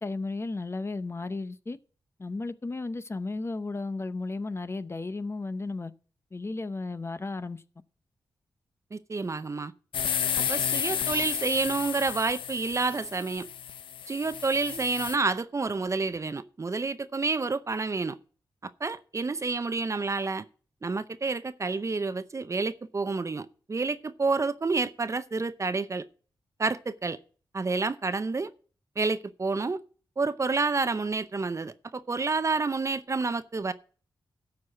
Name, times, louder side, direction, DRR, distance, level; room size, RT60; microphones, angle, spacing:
voice 1, 0.0-1.8 2.2-5.9 6.3-7.6, left 3 dB, 30° left, 0.7 m, -34 dB
voice 2, 8.9-9.7 10.5-13.5 14.1-18.2 18.6-20.4 20.8-26.1 26.6-27.2 27.5-28.5 29.0-29.8 30.2-33.7, right 3 dB, 35° right, 0.7 m, -29 dB
sound 1, 9.9-15.2, left 8 dB, 85° left, 0.5 m, -32 dB
12.5 x 4.8 x 7.3 m
cardioid pair, 75°, 9 cm